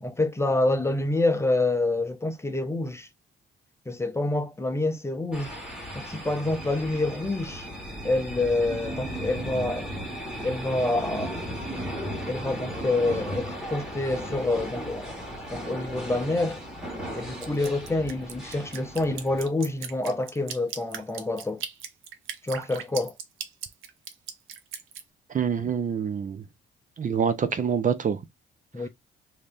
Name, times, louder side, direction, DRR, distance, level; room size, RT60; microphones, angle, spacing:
voice 1, 0.0-3.1 3.9-5.6 5.9-7.7 8.0-9.9 10.4-11.4 12.3-15.1 15.5-16.6 17.1-21.6 22.4-23.2 28.7-28.9, left 2 dB, 15° left, 0.7 m, -27 dB
sound 1, 5.3-19.5, equal, 5° right, 1.8 m, -36 dB
Drip, 17.4-25.0, right 8 dB, 90° right, 0.7 m, -38 dB
voice 2, 25.3-26.4 27.0-28.2, right 7 dB, 40° right, 0.7 m, -26 dB
3.1 x 2.8 x 3.4 m
cardioid pair, 90°, 20 cm